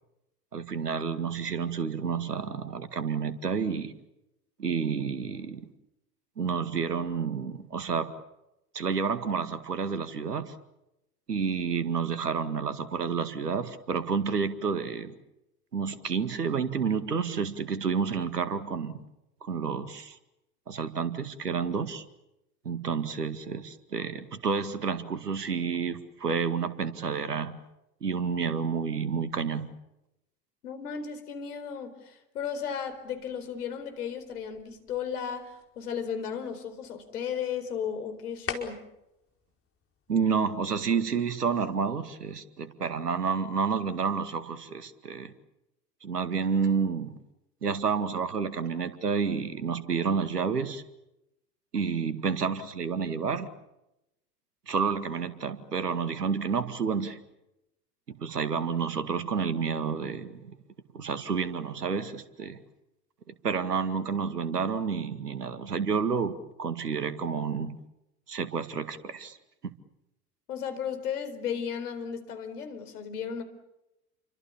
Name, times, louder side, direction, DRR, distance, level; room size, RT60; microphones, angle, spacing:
voice 1, 0.5-3.9 4.6-5.7 6.4-8.1 8.7-10.5 11.3-15.1 15.7-19.0 19.4-20.2 20.7-22.0 22.6-27.6 28.0-29.7 40.1-45.3 46.0-47.2 47.6-50.8 51.7-53.5 54.7-57.2 58.1-60.6 60.9-62.6 63.4-67.8 68.3-69.4 69.6-69.7, right 6 dB, 85° right, 12 dB, 2.1 m, -30 dB
voice 2, 30.6-38.8 70.5-73.4, left 7 dB, 75° left, 10 dB, 4.4 m, -35 dB
sound 1, 32.9-40.8, left 6 dB, 30° left, 4.9 m, -46 dB
29.5 x 24.5 x 7.2 m, 0.90 s
figure-of-eight pair, 85°, 46 cm